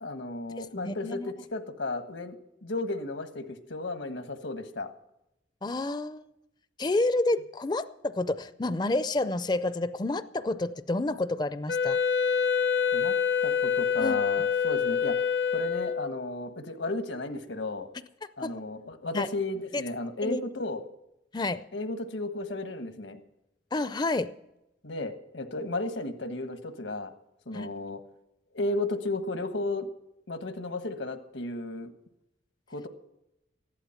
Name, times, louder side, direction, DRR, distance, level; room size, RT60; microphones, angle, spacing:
voice 1, 0.0-2.3 2.6-4.9 12.9-13.1 13.4-15.2 15.5-17.9 18.4-20.8 21.7-23.2 24.8-27.1 27.5-28.0 28.5-29.9 30.3-31.9 32.7-32.9, left 2 dB, 85° left, 8 dB, 1.4 m, -34 dB
voice 2, 0.6-1.3 5.6-6.3 6.8-12.0 14.0-14.2 18.4-18.5 19.1-19.3 19.7-19.8 20.2-20.4 21.3-21.6 23.7-24.3 27.5-27.7, left 2 dB, 25° left, 13 dB, 0.4 m, -29 dB
Wind instrument woodwind instrument, 11.7-16.2, left 7 dB, 65° left, 0.8 m, -26 dB
15.0 x 11.5 x 5.8 m, 0.87 s
head